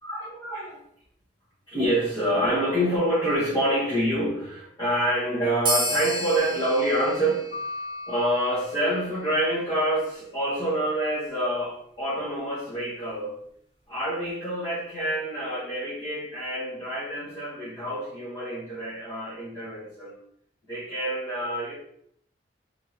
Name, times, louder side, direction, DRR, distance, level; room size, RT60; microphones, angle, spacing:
voice 1, 0.0-0.8 1.7-7.5 8.1-13.4 13.9-20.2 20.7-21.8, right 1 dB, 25° left, -10 dB, 1.3 m, -27 dB
sound 1, 5.6-8.7, equal, 30° right, 1.0 m, -31 dB
sound 2, 7.5-9.7, left 3 dB, 45° left, 0.8 m, -39 dB
3.8 x 3.5 x 2.9 m, 0.68 s
head